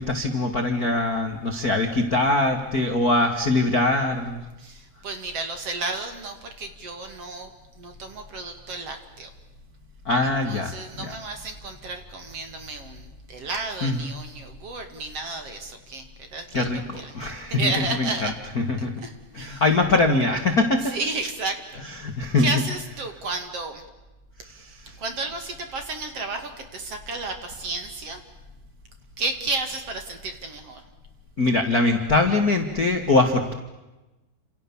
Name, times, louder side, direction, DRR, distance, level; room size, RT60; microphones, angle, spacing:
voice 1, 0.0-4.4 10.0-11.1 13.8-14.1 16.5-18.9 19.3-20.9 22.0-22.5 24.4-25.0 31.4-33.5, left 2 dB, 70° left, 5 dB, 0.8 m, -23 dB
voice 2, 4.6-7.5 7.8-9.3 10.2-18.3 19.0-19.6 20.9-21.8 22.4-23.8 25.0-28.2 29.2-30.8, right 3 dB, 45° right, 6 dB, 2.6 m, -32 dB
30.0 x 27.5 x 7.2 m, 1.1 s
omnidirectional pair, 4.9 m